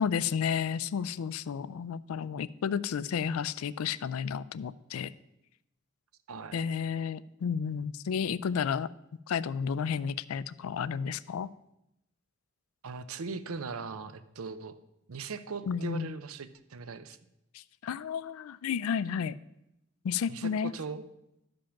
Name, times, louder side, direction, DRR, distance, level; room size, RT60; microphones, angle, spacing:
voice 1, 0.0-5.1 6.5-8.9 9.3-11.5 15.7-16.1 17.5-19.3 20.0-20.7, left 7 dB, 85° left, 19 dB, 0.4 m, -32 dB
voice 2, 6.3-6.6 12.8-14.8 15.1-17.2 20.3-21.0, right 4 dB, 85° right, 13 dB, 0.6 m, -39 dB
11.5 x 5.2 x 5.8 m, 0.86 s
head